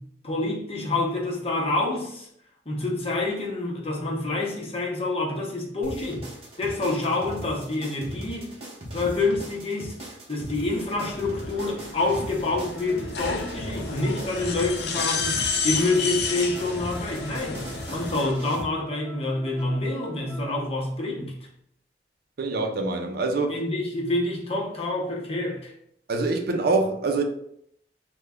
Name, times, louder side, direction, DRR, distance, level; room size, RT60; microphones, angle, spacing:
voice 1, 0.0-2.3 2.7-6.3 6.6-8.6 8.9-10.0 10.3-21.4 23.5-25.7, left 2 dB, 35° left, -2 dB, 0.8 m, -27 dB
sound 1, 5.8-18.6, right 1 dB, 30° right, 0.8 m, -39 dB
sound 2, 10.7-18.3, left 5 dB, 65° left, 0.5 m, -32 dB
sound 3, 12.7-20.7, left 1 dB, 5° right, 0.5 m, -45 dB
voice 2, 22.4-23.6 26.1-27.2, right 3 dB, 55° right, 4 dB, 0.5 m, -25 dB
3.2 x 2.2 x 3.5 m, 0.70 s
head